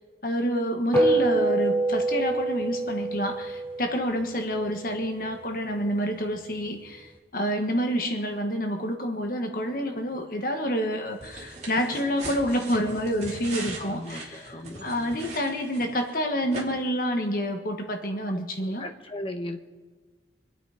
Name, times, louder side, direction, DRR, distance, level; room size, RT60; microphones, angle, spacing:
voice 1, 0.2-14.5 14.8-18.8, equal, 50° left, 4 dB, 1.6 m, -28 dB
sound 1, 0.9-5.6, right 2 dB, 15° left, 3.8 m, -26 dB
sound 2, 11.2-16.1 16.5-16.6, right 2 dB, 40° right, 2.9 m, -39 dB
voice 2, 13.8-15.2 18.3-19.6, left 1 dB, 30° left, 5 dB, 1.2 m, -38 dB
25.5 x 8.8 x 5.1 m, 1.4 s
head